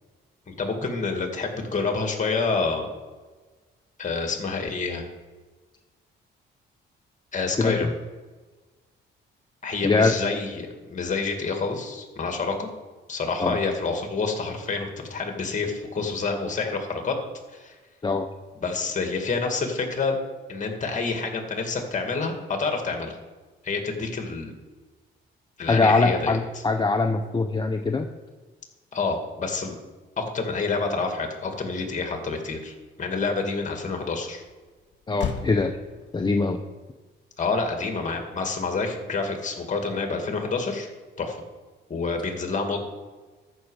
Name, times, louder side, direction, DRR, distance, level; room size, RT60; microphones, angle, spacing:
voice 1, 0.5-2.9 4.0-5.1 7.3-7.9 9.6-12.7 13.1-17.2 17.5-17.8 18.6-20.2 20.5-23.2 23.6-24.5 25.6-26.3 28.9-29.8 30.2-34.4 37.4-40.9 41.2-41.4 41.9-42.8, left 4 dB, 40° left, 4 dB, 2.2 m, -28 dB
voice 2, 7.6-7.9 9.8-10.1 13.4-13.6 18.0-18.3 25.7-28.1 35.1-35.7 36.1-36.6, left 3 dB, 20° left, 5 dB, 0.6 m, -22 dB
Motor vehicle (road), 34.2-39.7, left 7 dB, 65° left, 1.5 m, -41 dB
13.5 x 6.2 x 4.9 m, 1.3 s
cardioid pair, 90°, 20 cm